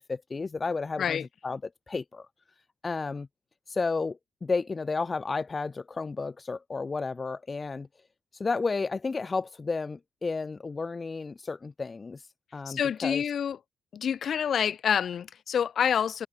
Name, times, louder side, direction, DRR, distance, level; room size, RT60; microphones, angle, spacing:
voice 1, 0.0-2.3 2.8-3.3 3.7-7.9 8.3-12.3 12.5-13.2, left 4 dB, 30° left, 4.3 m, -32 dB
voice 2, 12.7-13.6 13.9-16.3, left 8 dB, 55° left, 6.7 m, -27 dB
cardioid pair, 90°, 0 cm